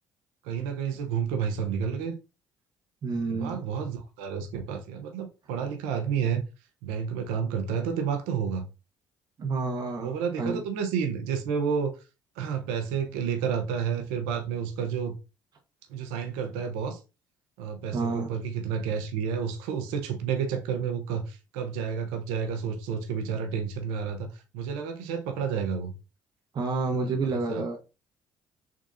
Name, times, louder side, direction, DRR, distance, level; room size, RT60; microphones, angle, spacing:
voice 1, 0.4-2.1 3.3-6.4 6.8-8.7 10.0-11.9 12.4-15.1 15.9-17.0 17.6-25.9 27.0-27.6, right 7 dB, 85° right, 0.7 m, -30 dB
voice 2, 3.0-3.6 9.4-10.1 10.4-10.6 17.9-18.3 26.5-27.8, right 3 dB, 45° right, 0.9 m, -29 dB
3.7 x 3.6 x 2.5 m
supercardioid pair, 65°, 9 cm